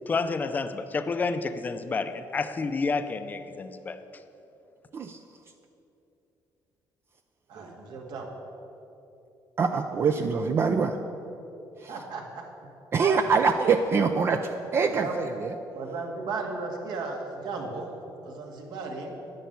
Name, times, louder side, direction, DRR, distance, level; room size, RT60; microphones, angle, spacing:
voice 1, 0.1-4.0, left 4 dB, 25° left, 10 dB, 0.6 m, -29 dB
voice 2, 7.5-8.3 10.2-10.3 11.9-13.1 14.8-15.3 15.7-18.0 18.2-19.2, right 3 dB, 75° right, 1 dB, 2.3 m, -36 dB
voice 3, 9.6-11.0 11.8-11.9 12.9-15.5, right 5 dB, 35° right, 6 dB, 0.5 m, -24 dB
10.5 x 10.0 x 8.3 m, 2.9 s
cardioid pair, 170°, 7 cm